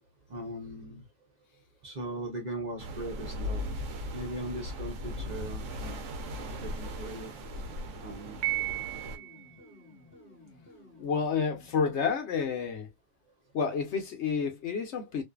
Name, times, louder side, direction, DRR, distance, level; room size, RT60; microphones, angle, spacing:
voice 1, 0.3-1.1 1.8-3.7 4.1-6.1 6.4-7.3 8.0-8.4, right 1 dB, 40° right, 0.8 m, -39 dB
sound 1, 2.8-9.2, left 1 dB, 85° right, 1.0 m, -38 dB
sound 2, 6.4-12.1, left 2 dB, 10° left, 0.9 m, -54 dB
Piano, 8.4-9.5, right 16 dB, 65° right, 0.4 m, -33 dB
voice 2, 11.0-12.9 13.5-15.2, left 6 dB, 70° left, 1.0 m, -30 dB
2.6 x 2.5 x 2.3 m
omnidirectional pair, 1.3 m